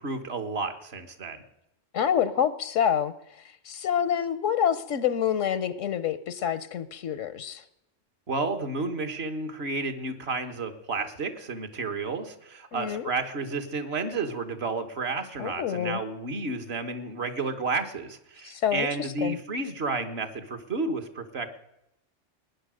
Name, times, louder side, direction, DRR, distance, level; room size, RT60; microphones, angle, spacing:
voice 1, 0.0-1.4 8.3-21.6, right 3 dB, 55° right, 8 dB, 1.7 m, -31 dB
voice 2, 1.9-3.1 3.7-7.6 12.7-13.1 15.4-16.0 18.4-19.4, left 9 dB, 85° left, 15 dB, 1.1 m, -27 dB
19.0 x 10.5 x 6.4 m, 0.83 s
omnidirectional pair, 1.3 m